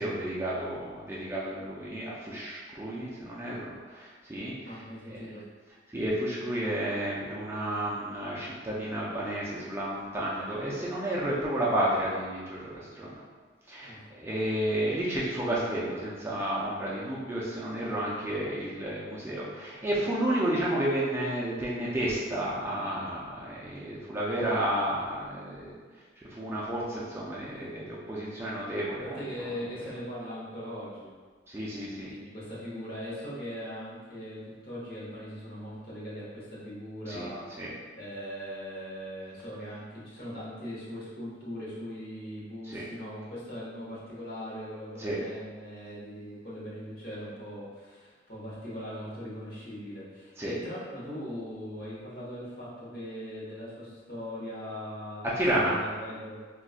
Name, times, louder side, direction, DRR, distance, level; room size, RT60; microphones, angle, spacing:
voice 1, 0.0-4.8 5.1-5.2 5.9-13.1 13.7-25.7 26.2-29.2 31.5-32.1 37.1-37.3 37.6-37.7 42.6-42.9 45.0-45.2 50.4-50.5 55.2-55.8, right 1 dB, 15° right, -7 dB, 0.3 m, -31 dB
voice 2, 4.6-5.4 13.8-14.0 27.5-27.8 29.0-31.1 32.0-37.5 37.9-55.3 55.6-56.4, equal, 50° left, -7 dB, 1.0 m, -40 dB
4.0 x 2.3 x 2.4 m, 1.5 s
head